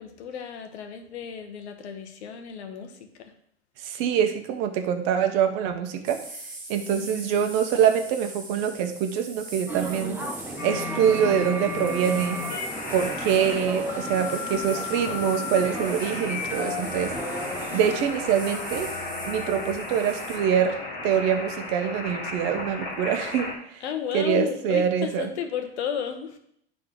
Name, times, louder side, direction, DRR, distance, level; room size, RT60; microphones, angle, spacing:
voice 1, 0.0-3.3 6.9-7.3 17.7-18.1 23.8-26.4, left 8 dB, 70° left, 7 dB, 1.2 m, -33 dB
voice 2, 3.8-6.2 6.7-10.2 10.6-12.4 12.9-17.1 17.7-18.9 19.2-20.8 21.0-23.5 24.1-25.3, right 8 dB, 45° right, 7 dB, 1.0 m, -24 dB
sound 1, 6.0-20.4, right 2 dB, 25° right, 2.7 m, -42 dB
sound 2, 9.7-17.9, right 1 dB, 5° right, 1.0 m, -36 dB
sound 3, 10.6-23.5, left 3 dB, 30° left, 1.6 m, -34 dB
10.5 x 3.8 x 3.7 m, 0.69 s
hypercardioid pair, 110°, 34 cm